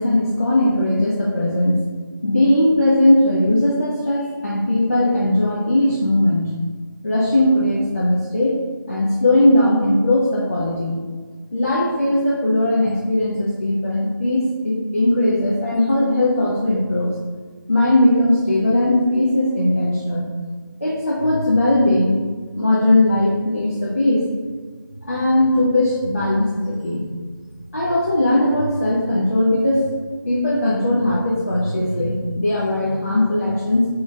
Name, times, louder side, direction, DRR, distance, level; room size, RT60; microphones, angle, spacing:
voice 1, 0.0-1.9 2.2-6.6 7.0-8.6 8.9-11.0 11.5-17.1 17.7-20.3 20.8-22.2 22.5-24.3 25.1-27.0 27.7-29.9 30.3-33.9, left 1 dB, 40° left, -6 dB, 0.6 m, -18 dB
3.5 x 3.0 x 3.2 m, 1.5 s
figure-of-eight pair, 175°, 11 cm